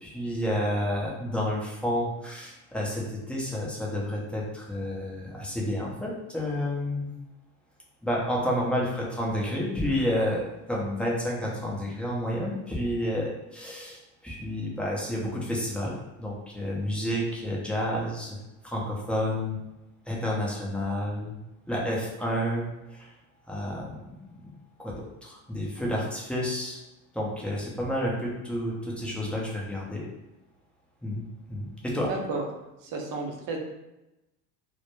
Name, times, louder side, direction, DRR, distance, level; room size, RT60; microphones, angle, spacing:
voice 1, 0.0-7.1 8.0-18.4 18.6-19.6 20.1-21.3 21.7-23.1 23.5-24.2 24.8-26.8 27.1-30.0 31.0-31.2 31.5-32.1, equal, 5° left, -4 dB, 0.6 m, -30 dB
voice 2, 32.1-32.4 32.8-33.6, right 3 dB, 50° right, 1 dB, 0.6 m, -32 dB
2.1 x 2.0 x 3.0 m, 0.95 s
hypercardioid pair, 75°, 43 cm